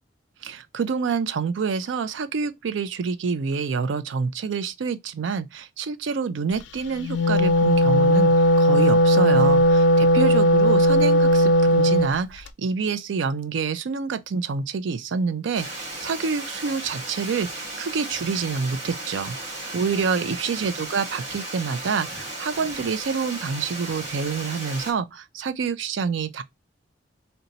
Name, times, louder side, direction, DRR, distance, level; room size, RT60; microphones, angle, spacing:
voice 1, 0.4-26.4, right 5 dB, 85° right, 0.4 m, -27 dB
Wind instrument woodwind instrument, 7.0-12.1, equal, 65° left, 0.4 m, -17 dB
Water, 15.5-24.9, right 2 dB, 35° right, 1.5 m, -35 dB
3.9 x 2.2 x 3.9 m
head